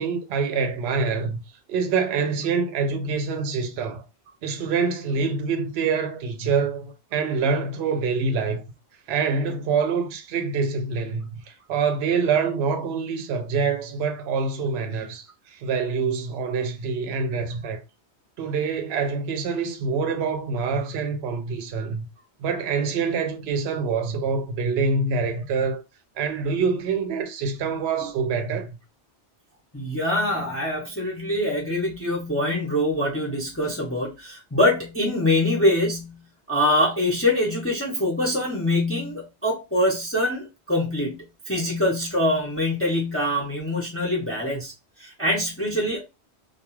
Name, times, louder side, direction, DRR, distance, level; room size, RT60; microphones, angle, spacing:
voice 1, 0.0-1.4 1.7-4.0 4.4-8.6 9.1-17.8 18.4-22.1 22.4-25.8 26.2-28.7, right 5 dB, 70° right, 0.8 m, -25 dB
voice 2, 29.7-44.7 45.0-46.0, left 1 dB, 15° left, 0.6 m, -24 dB
2.3 x 2.3 x 3.0 m
omnidirectional pair, 1.1 m